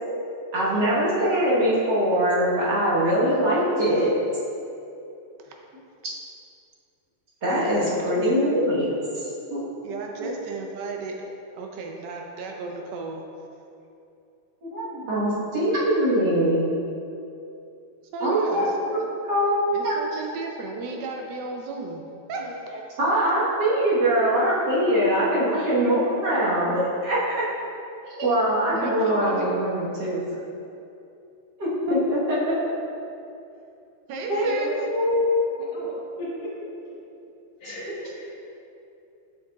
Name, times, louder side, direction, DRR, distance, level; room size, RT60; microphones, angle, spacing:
voice 1, 0.5-4.2 7.4-8.9 9.5-9.6 14.6-16.7 18.2-20.0 22.4-22.5 23.0-27.4 28.2-30.2 31.6-32.6 34.3-34.6 34.9-35.5, equal, 55° right, -9 dB, 1.9 m, -22 dB
voice 2, 7.9-8.2 9.8-11.2 11.5-13.2 18.1-18.9 19.7-22.0 22.3-22.6 28.7-29.3 34.1-34.7, right 4 dB, 75° right, 1 dB, 1.0 m, -34 dB
voice 3, 34.1-34.8 35.7-36.5 37.6-38.5, left 1 dB, 75° left, -6 dB, 2.2 m, -37 dB
6.6 x 6.5 x 2.3 m, 2.7 s
omnidirectional pair, 2.4 m